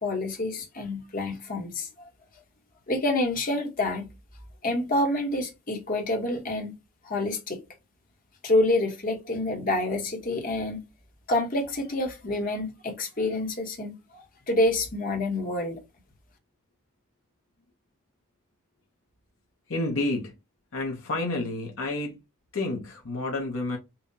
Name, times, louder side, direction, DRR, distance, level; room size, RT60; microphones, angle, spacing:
voice 1, 0.0-2.1 2.9-4.1 4.6-6.7 7.0-7.6 8.4-10.8 11.3-15.8, left 2 dB, 40° left, 1.1 m, -27 dB
voice 2, 19.7-20.3 20.7-22.2 22.5-23.8, left 2 dB, 70° left, 0.9 m, -29 dB
5.5 x 2.3 x 2.7 m
head